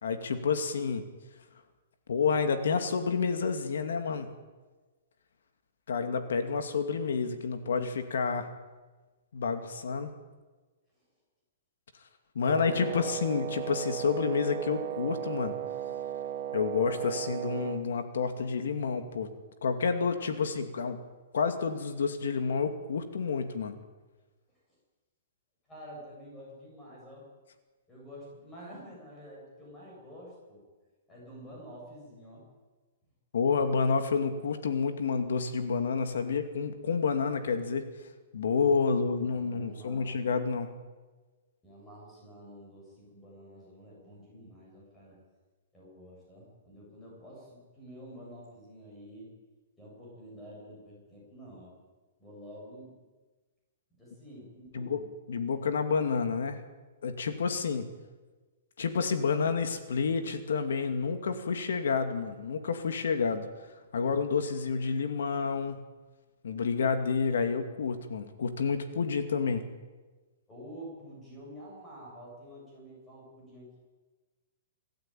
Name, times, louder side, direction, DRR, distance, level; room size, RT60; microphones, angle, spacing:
voice 1, 0.0-1.0 2.1-4.3 5.9-8.5 9.3-10.1 12.3-15.5 16.5-19.3 19.6-21.0 21.3-23.8 33.3-37.9 38.3-40.7 54.7-56.6 57.0-57.9 58.8-63.5 63.9-65.8 66.4-69.6, left 5 dB, 80° left, 8 dB, 2.5 m, -29 dB
voice 2, 12.4-13.1 25.7-27.2 27.9-30.6 31.1-32.4 36.2-36.4 38.8-40.2 41.6-45.2 45.7-49.3 49.8-51.7 52.2-52.9 53.9-55.0 64.0-64.1 70.5-73.8, equal, 10° left, -4 dB, 7.6 m, -48 dB
Wind instrument woodwind instrument, 12.5-17.8, right 11 dB, 30° right, 2.5 m, -36 dB
27.0 x 14.5 x 9.2 m, 1.3 s
hypercardioid pair, 175°, 0 cm